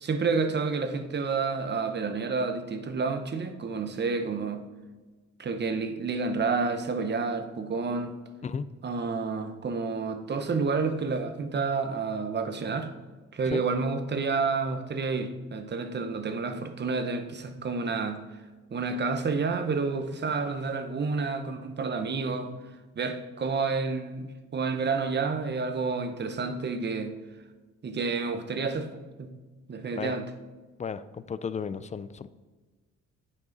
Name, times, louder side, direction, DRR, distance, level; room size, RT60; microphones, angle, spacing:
voice 1, 0.0-4.6 5.4-8.2 8.8-12.9 13.3-18.2 18.7-22.5 23.0-27.1 27.8-29.3 29.7-30.2, right 4 dB, 35° right, 8 dB, 0.8 m, -29 dB
voice 2, 30.8-32.3, left 6 dB, 25° left, 15 dB, 0.3 m, -34 dB
9.1 x 5.4 x 3.9 m, 1.3 s
cardioid pair, 90°, 30 cm